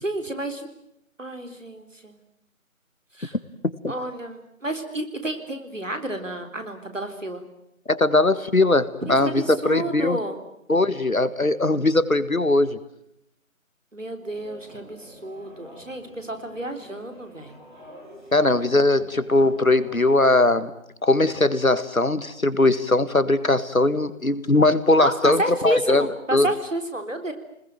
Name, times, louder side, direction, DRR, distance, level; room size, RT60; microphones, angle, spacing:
voice 1, 0.0-0.7 1.2-2.1 3.1-3.4 3.9-7.4 9.0-10.4 13.9-17.6 25.0-27.3, right 1 dB, 65° right, 7 dB, 4.1 m, -30 dB
voice 2, 7.9-10.2 10.7-12.8 18.3-20.7 21.0-26.1 26.3-26.5, left 2 dB, 90° left, 14 dB, 1.9 m, -20 dB
sound 1, 14.3-20.5, equal, 35° right, 7.2 m, -48 dB
26.0 x 20.5 x 9.1 m, 0.78 s
figure-of-eight pair, 170°, 41 cm